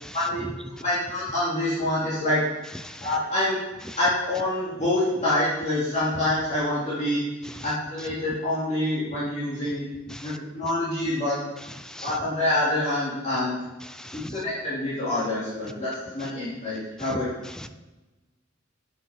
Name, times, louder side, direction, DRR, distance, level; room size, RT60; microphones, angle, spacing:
voice 1, 0.1-2.4 3.0-3.6 4.0-7.2 7.6-9.9 10.2-11.4 12.0-13.6 14.1-17.3, left 1 dB, 35° left, -10 dB, 2.4 m, -26 dB
voice 2, 13.9-14.3 17.6-17.8, left 1 dB, 5° left, 9 dB, 0.3 m, -41 dB
8.4 x 5.7 x 5.6 m, 1.1 s
head